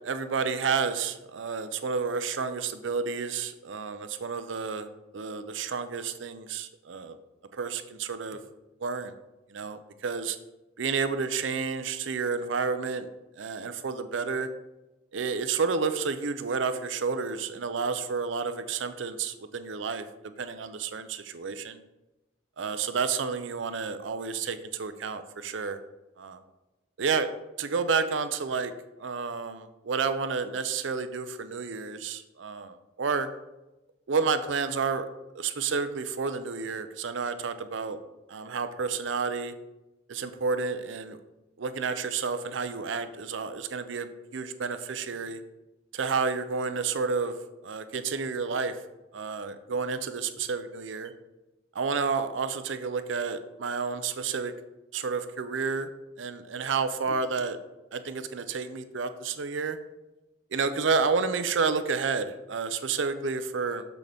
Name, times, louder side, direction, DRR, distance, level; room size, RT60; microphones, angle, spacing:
voice 1, 0.0-4.9 5.1-7.2 7.5-8.4 8.8-9.1 9.5-10.4 10.8-13.1 13.4-14.5 15.1-21.8 22.6-25.8 26.2-26.4 27.0-27.3 27.6-28.7 29.0-33.3 34.1-35.1 35.4-38.0 38.3-39.5 40.1-41.2 41.6-45.4 45.9-47.4 47.6-48.8 49.1-51.1 51.7-54.5 54.9-55.9 56.2-57.6 57.9-59.8 60.5-63.9, right 5 dB, 80° right, 10 dB, 0.6 m, -30 dB
6.8 x 6.1 x 3.5 m, 1.0 s
head